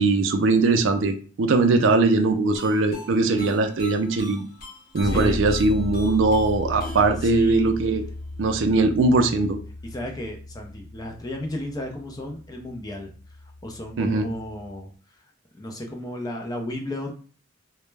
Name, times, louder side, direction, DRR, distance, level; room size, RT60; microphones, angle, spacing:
voice 1, 0.0-4.4 4.9-8.0 8.4-9.6 14.0-14.3, right 3 dB, 75° right, 6 dB, 0.4 m, -20 dB
sound 1, 2.5-8.4, left 2 dB, 50° left, 0.8 m, -42 dB
Bass guitar, 5.0-14.8, left 1 dB, 85° left, 0.7 m, -35 dB
voice 2, 5.0-5.4 7.3-7.7 9.8-13.1 13.6-14.9 15.5-17.1, left 1 dB, 20° left, 2 dB, 0.4 m, -33 dB
2.1 x 2.0 x 3.1 m, 0.40 s
head